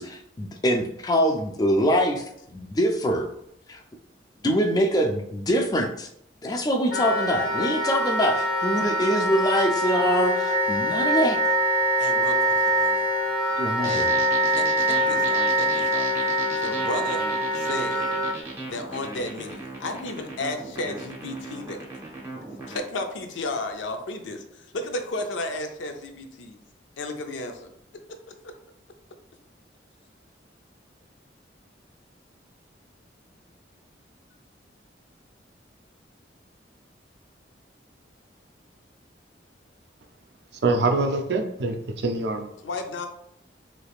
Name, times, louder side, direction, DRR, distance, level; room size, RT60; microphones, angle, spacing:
voice 1, 0.0-3.3 3.7-3.8 4.4-6.1 6.4-11.4 13.6-14.2, equal, 20° left, 5 dB, 0.3 m, -24 dB
Wind instrument woodwind instrument, 6.9-18.3, right 1 dB, 50° left, 0.8 m, -24 dB
voice 2, 12.0-12.3 12.8-13.0 13.8-14.1 14.5-14.6 15.1-15.7 15.9-16.0 16.6-17.2 17.7-18.0 18.7-21.8 22.7-24.4 24.8-26.6 27.0-27.5 42.6-43.1, left 2 dB, 85° left, 6 dB, 0.5 m, -32 dB
sound 1, 13.8-22.8, right 2 dB, 15° right, 0.7 m, -37 dB
voice 3, 40.6-41.8 42.0-42.5, right 3 dB, 65° right, 5 dB, 0.4 m, -24 dB
3.3 x 3.1 x 2.4 m, 0.76 s
head